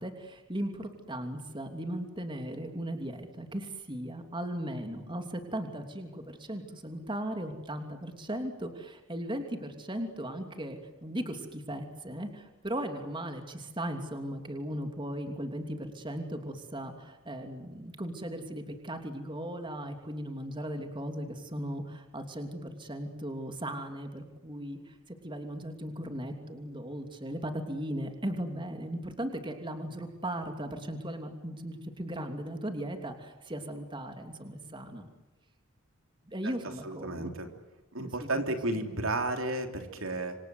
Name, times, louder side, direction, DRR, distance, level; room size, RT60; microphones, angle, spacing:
voice 1, 0.0-35.1 36.3-37.3 38.0-38.6, right 1 dB, 20° right, 5 dB, 2.8 m, -37 dB
voice 2, 36.8-37.5 37.9-40.4, right 2 dB, 70° right, 6 dB, 3.4 m, -32 dB
27.5 x 26.0 x 7.9 m, 1.0 s
head